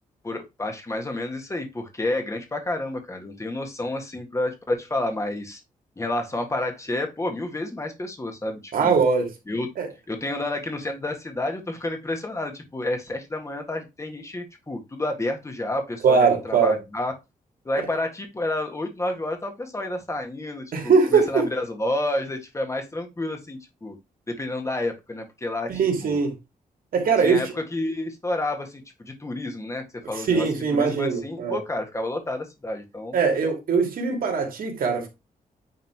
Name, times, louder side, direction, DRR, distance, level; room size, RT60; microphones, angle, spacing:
voice 1, 0.2-5.6 6.0-9.0 9.5-9.7 10.1-17.1 17.7-23.9 24.3-25.7 26.0-26.2 27.2-33.2, left 1 dB, 20° left, 1.7 m, -30 dB
voice 2, 8.7-9.3 9.8-9.9 16.0-16.8 17.8-17.9 20.7-21.5 25.7-26.3 26.9-27.5 30.1-31.6 33.1-35.1, right 5 dB, 75° right, 2.6 m, -21 dB
9.5 x 3.7 x 4.6 m
wide cardioid pair, 125°, 15 cm